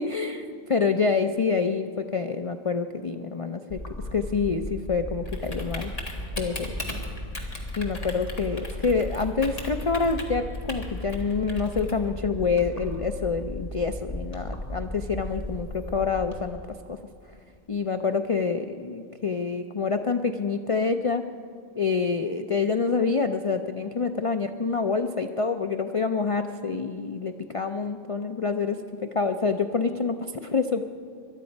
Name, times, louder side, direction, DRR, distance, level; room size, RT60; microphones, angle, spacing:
voice 1, 0.0-3.8 4.1-5.9 6.4-6.7 7.8-16.6 16.9-17.0 17.7-21.2 21.8-30.8, left 4 dB, 60° left, 7 dB, 0.3 m, -27 dB
Typing, 3.7-16.4, left 1 dB, 30° left, 1.8 m, -35 dB
21.5 x 12.5 x 5.3 m, 2.2 s
omnidirectional pair, 1.3 m